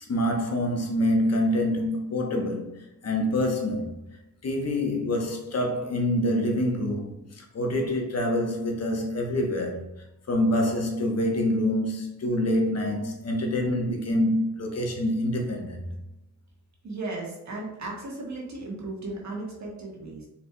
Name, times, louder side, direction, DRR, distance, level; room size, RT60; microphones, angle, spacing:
voice 1, 0.1-2.7 3.0-3.9 4.4-9.8 10.3-15.8, left 1 dB, 50° left, 1.0 m, -26 dB
voice 2, 16.8-20.3, right 2 dB, 60° right, 1.4 m, -36 dB
4.8 x 4.1 x 2.2 m
cardioid pair, 90°, 32 cm